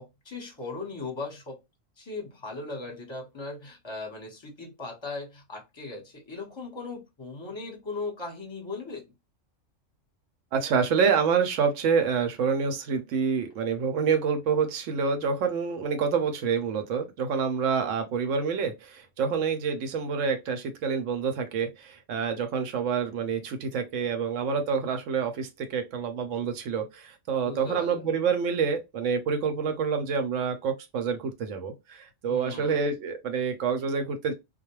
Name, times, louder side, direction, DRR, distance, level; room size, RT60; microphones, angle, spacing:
voice 1, 0.0-1.6 2.0-9.0 27.4-28.0 32.3-32.8, left 3 dB, 25° left, 0.8 m, -38 dB
voice 2, 10.5-34.3, right 6 dB, 70° right, 0.9 m, -27 dB
2.4 x 2.1 x 2.9 m
omnidirectional pair, 1.4 m